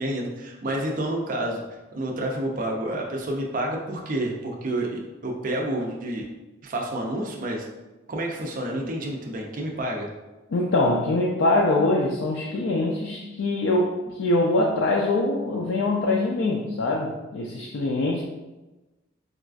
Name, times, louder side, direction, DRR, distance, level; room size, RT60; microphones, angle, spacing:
voice 1, 0.0-1.6 1.9-6.3 6.6-7.6 8.1-10.1, right 1 dB, 45° right, 0 dB, 0.4 m, -29 dB
voice 2, 10.5-18.2, left 2 dB, 70° left, -1 dB, 0.3 m, -23 dB
4.0 x 2.4 x 2.3 m, 1.1 s
head